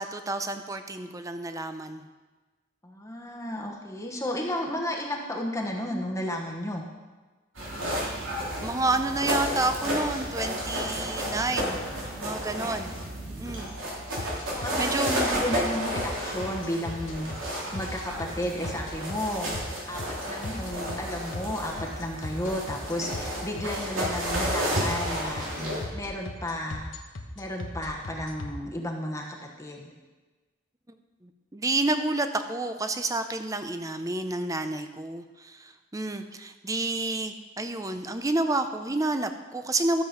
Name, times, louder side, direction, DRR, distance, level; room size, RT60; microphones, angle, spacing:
voice 1, 0.0-2.0 8.6-11.8 12.2-12.9 13.3-13.7 14.5-15.1 31.2-40.0, right 2 dB, 15° right, 8 dB, 0.6 m, -29 dB
voice 2, 2.8-6.8 14.5-17.3 17.7-19.5 19.9-25.5 25.9-26.9 27.4-29.9, left 1 dB, 15° left, 0 dB, 1.1 m, -33 dB
sound 1, 7.5-25.8, equal, 85° right, 3.1 m, -32 dB
sound 2, 14.2-28.5, left 2 dB, 70° left, 1.1 m, -38 dB
13.0 x 7.6 x 5.1 m, 1.3 s
head